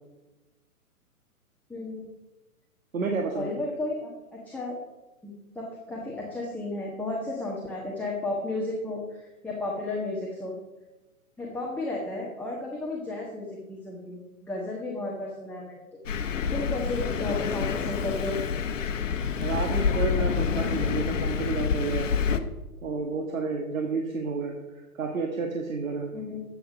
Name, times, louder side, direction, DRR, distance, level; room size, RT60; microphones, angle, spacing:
voice 1, 1.7-2.1 3.3-4.8 5.2-10.6 11.4-15.8 16.5-18.4 26.1-26.4, left 2 dB, 5° left, -4 dB, 1.4 m, -33 dB
voice 2, 2.9-3.5 19.4-22.1 22.8-26.1, right 4 dB, 60° right, 2 dB, 1.7 m, -30 dB
Thunder, 16.1-22.4, left 6 dB, 55° left, 1.1 m, -27 dB
13.5 x 8.1 x 5.1 m, 1.1 s
figure-of-eight pair, 130°, 45 cm